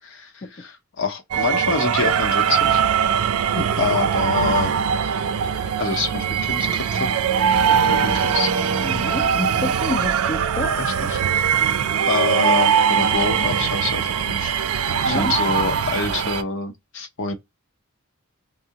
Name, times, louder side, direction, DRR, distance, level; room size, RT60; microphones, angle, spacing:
voice 1, 0.0-2.8 3.8-4.7 5.8-7.1 7.7-8.5 8.8-9.2 10.8-11.2 12.1-14.5 14.8-17.3, left 4 dB, 60° left, 0.7 m, -26 dB
sound 1, 1.3-16.4, right 7 dB, 75° right, 0.4 m, -21 dB
voice 2, 8.8-10.7 14.8-15.3, left 2 dB, 35° left, 0.4 m, -29 dB
3.6 x 2.0 x 2.8 m
head